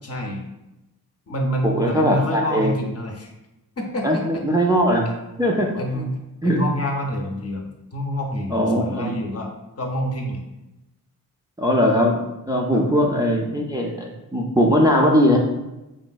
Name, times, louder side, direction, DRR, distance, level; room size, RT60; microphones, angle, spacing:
voice 1, 0.0-0.4 1.3-3.3 3.8-4.4 5.7-7.7 7.9-9.5 9.8-10.4 12.7-12.8, equal, 40° left, 1 dB, 0.6 m, -27 dB
voice 2, 1.6-2.7 4.0-5.1 5.4-6.1 6.4-6.6 8.5-9.1 11.6-15.4, equal, 10° right, -1 dB, 0.4 m, -20 dB
3.0 x 2.5 x 2.3 m, 0.97 s
cardioid pair, 40°, 38 cm